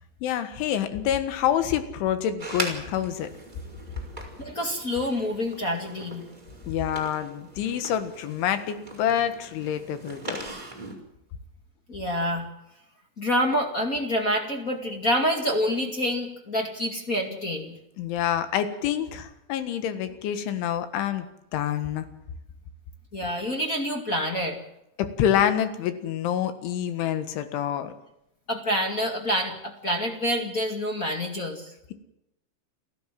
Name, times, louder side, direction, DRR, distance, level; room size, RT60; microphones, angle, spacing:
voice 1, 0.2-3.3 6.7-10.4 18.0-21.3 21.5-22.1 25.0-27.9, left 10 dB, 85° left, 10 dB, 4.0 m, -27 dB
sound 1, 2.4-10.9, right 2 dB, 10° right, 4.2 m, -40 dB
voice 2, 4.4-6.2 11.9-12.4 13.2-17.7 23.1-24.6 28.5-31.7, equal, 30° left, 3 dB, 1.5 m, -27 dB
29.5 x 14.0 x 7.6 m, 0.84 s
omnidirectional pair, 5.4 m